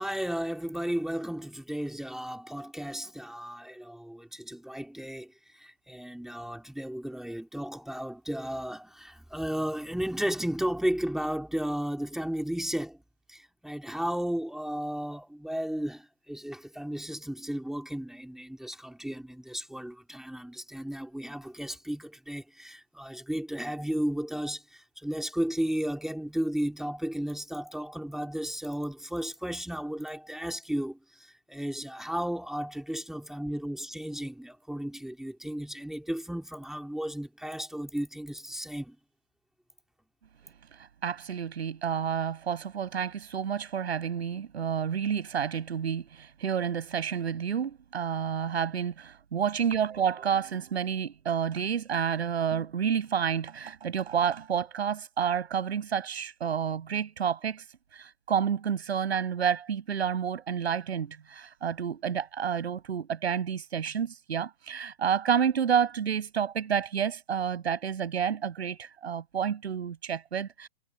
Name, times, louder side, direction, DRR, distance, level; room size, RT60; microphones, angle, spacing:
voice 1, 0.0-5.3 5.6-13.0 13.3-38.9, equal, ahead, 3.3 m, -34 dB
voice 2, 41.0-57.6 57.9-70.7, right 8 dB, 75° right, 7.2 m, -29 dB
hypercardioid pair, 130°, 32 cm